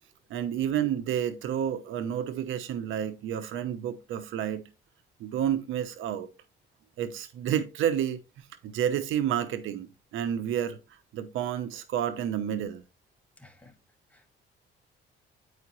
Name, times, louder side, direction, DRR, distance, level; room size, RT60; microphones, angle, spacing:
voice 1, 0.3-4.6 5.2-6.3 7.0-8.2 8.6-10.8 11.1-12.8, right 9 dB, 85° right, 0.8 m, -30 dB
voice 2, 13.4-13.8 14.1-14.3, left 2 dB, 5° left, 1.9 m, -57 dB
9.5 x 4.9 x 3.0 m
cardioid pair, 90°, 20 cm